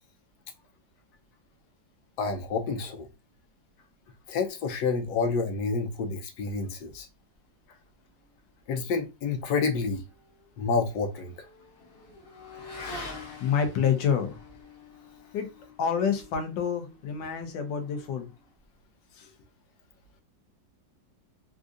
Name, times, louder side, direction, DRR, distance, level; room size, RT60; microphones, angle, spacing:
voice 1, 2.2-3.1 4.3-7.1 8.7-10.0 10.6-11.3, left 4 dB, 65° left, 1.1 m, -29 dB
Motorcycle / Accelerating revving vroom, 9.9-18.6, left 3 dB, 50° left, 0.7 m, -46 dB
voice 2, 13.4-14.4 15.3-15.5 15.8-18.3 19.2-19.3, left 7 dB, 90° left, 1.4 m, -27 dB
3.7 x 2.5 x 2.4 m
omnidirectional pair, 1.9 m